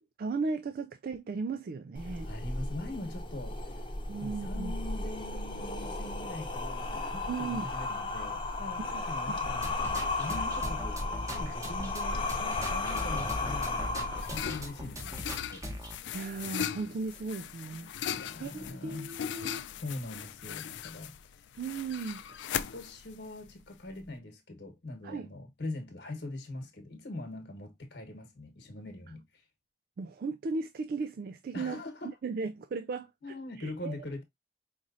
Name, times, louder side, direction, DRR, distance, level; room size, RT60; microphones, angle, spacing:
voice 1, 0.2-2.3 4.1-4.7 7.3-7.7 8.8-8.9 9.3-9.4 16.1-19.6 21.6-22.5 25.0-25.3 30.0-31.8 32.2-33.9, right 4 dB, 55° right, 0.3 m, -36 dB
sound 1, 1.9-14.9, left 2 dB, 30° left, 0.9 m, -35 dB
voice 2, 2.1-3.6 4.2-15.6 18.1-19.1 19.8-21.4 22.6-29.4 31.5-32.1 33.2-34.2, left 2 dB, 70° left, 1.2 m, -42 dB
sound 2, 9.4-15.9, equal, 20° right, 1.0 m, -40 dB
sound 3, 13.5-24.1, left 9 dB, 90° left, 0.4 m, -39 dB
5.0 x 3.0 x 2.5 m
head